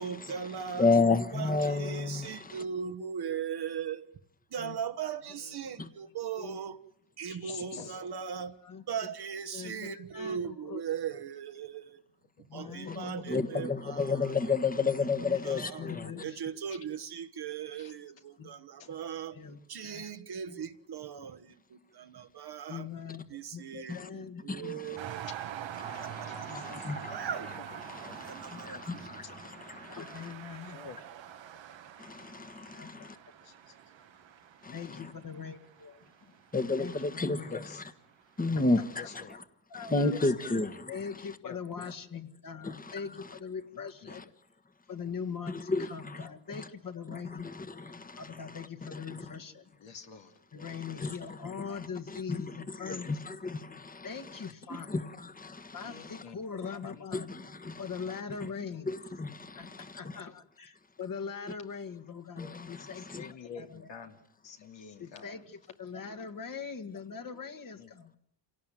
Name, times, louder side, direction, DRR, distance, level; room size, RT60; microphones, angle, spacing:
voice 1, 0.0-1.0 1.3-4.1 4.5-6.8 7.2-8.5 8.9-12.0 12.5-14.5 15.0-15.8 16.2-19.4 19.7-22.9 23.3-25.3 26.0-26.7 27.1-27.5 28.2-29.1, right 7 dB, 60° right, 1.4 m, -39 dB
voice 2, 0.8-2.3 13.3-16.1 23.9-24.1 24.5-24.7 25.8-27.1 27.9-29.4 29.7-30.0 32.0-33.1 34.6-34.7 36.5-37.6 38.4-39.0 39.8-40.9 42.6-42.9 45.7-46.2 46.5-46.6 47.4-48.2 48.9-49.2 51.0-51.2 52.8-54.1 54.9-55.7 57.1-57.8 58.9-60.0 62.4-63.3, left 3 dB, 20° left, 1.4 m, -31 dB
voice 3, 5.3-5.7 6.0-6.1 6.4-6.5 7.3-8.0 12.4-13.5 15.6-16.4 17.8-17.9 18.8-18.9 26.3-26.9 28.1-28.2 28.7-28.8 30.6-31.0 33.4-33.7 34.7-35.1 37.5-37.8 38.9-39.3 40.1-40.6 41.4-41.6 43.7-44.1 49.8-50.7 55.8-56.4 56.9-57.3 58.1-58.6 62.4-64.2 64.4-65.4 67.8-67.9, left 6 dB, 85° left, 2.6 m, -48 dB
voice 4, 9.5-10.8 12.5-13.5 15.2-16.4 18.4-18.5 19.3-20.1 20.5-20.6 22.7-23.2 23.5-24.7 26.5-26.8 27.3-27.5 28.5-28.7 29.9-30.9 32.7-33.0 34.7-36.1 36.8-37.5 38.8-38.9 39.7-40.1 40.4-40.6 40.9-44.3 44.9-47.5 48.2-49.6 50.5-53.4 54.0-55.1 55.7-57.3 57.8-58.9 59.6-59.7 59.9-63.1 63.6-63.9 65.0-68.1, left 6 dB, 45° left, 1.9 m, -42 dB
sound 1, 25.0-37.8 38.4-38.5, right 9 dB, 80° right, 1.5 m, -45 dB
26.5 x 18.0 x 9.2 m
cardioid pair, 100°, 44 cm